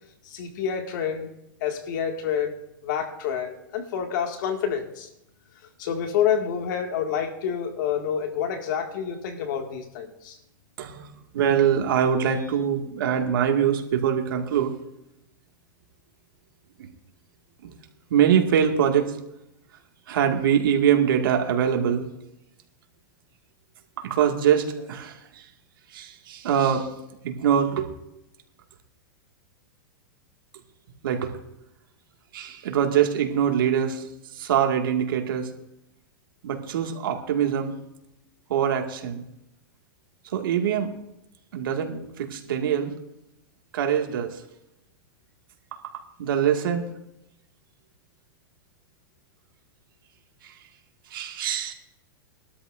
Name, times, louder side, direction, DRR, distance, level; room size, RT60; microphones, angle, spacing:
voice 1, 0.2-1.3 1.6-2.5 2.8-5.1 5.8-10.4, left 8 dB, 60° left, 4 dB, 2.1 m, -28 dB
voice 2, 10.8-14.7 16.8-16.9 17.6-17.7 18.1-19.2 20.1-22.1 24.0-25.5 25.9-26.9 27.2-27.9 31.0-31.3 32.3-35.5 36.4-37.7 38.5-39.2 40.3-40.9 41.5-42.9 43.7-44.4 45.7-46.9 50.4-50.6 51.1-51.7, right 8 dB, 75° right, 3 dB, 2.1 m, -24 dB
21.0 x 12.5 x 2.6 m, 0.85 s
supercardioid pair, 150°, 12 cm